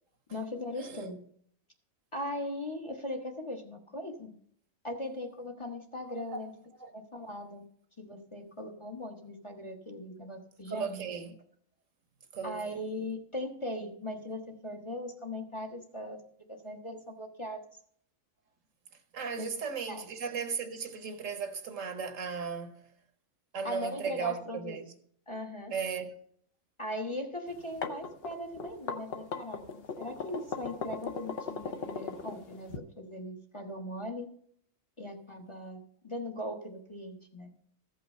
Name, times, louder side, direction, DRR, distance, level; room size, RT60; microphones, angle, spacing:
voice 1, 0.3-1.2 2.1-4.3 4.8-6.5 6.9-7.6 8.0-11.0 12.4-16.2 16.5-17.6 19.4-19.5 19.9-20.1 23.6-24.8 25.3-25.7 26.8-34.3 35.0-37.5, left 1 dB, 25° left, 1.0 m, -39 dB
voice 2, 10.7-11.3 12.3-12.8 19.1-22.9 23.5-24.9 25.7-26.1, right 5 dB, 70° right, 1.4 m, -36 dB
sound 1, 27.5-32.8, left 5 dB, 50° left, 1.0 m, -38 dB
14.5 x 5.6 x 5.3 m
omnidirectional pair, 1.4 m